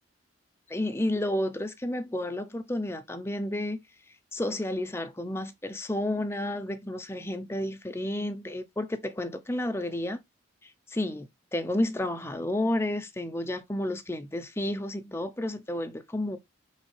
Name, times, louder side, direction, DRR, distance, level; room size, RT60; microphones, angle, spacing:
voice 1, 0.7-3.8 4.3-10.2 10.6-16.4, left 1 dB, 15° left, 0.5 m, -31 dB
5.3 x 3.2 x 3.1 m
head